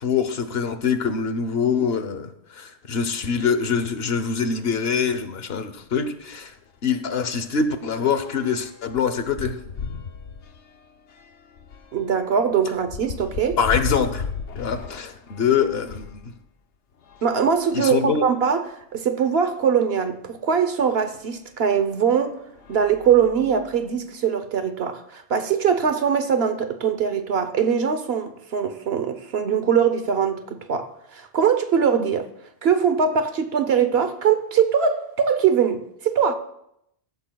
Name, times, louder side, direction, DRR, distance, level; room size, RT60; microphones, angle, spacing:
voice 1, 0.0-6.5 6.8-9.6 13.6-14.2 14.5-16.2 17.7-18.2, left 6 dB, 65° left, 1.1 m, -24 dB
sound 1, 5.8-6.0 6.3-6.5 6.8-16.3 17.0-18.3 19.0-19.1 19.3-19.4 21.1-21.2 21.9-22.2 22.5-23.8, left 5 dB, 85° left, 1.2 m, -36 dB
voice 2, 11.9-13.6 17.2-22.4 22.7-32.3 32.6-36.4, right 7 dB, 65° right, 1.1 m, -22 dB
15.0 x 13.5 x 2.3 m
omnidirectional pair, 1.2 m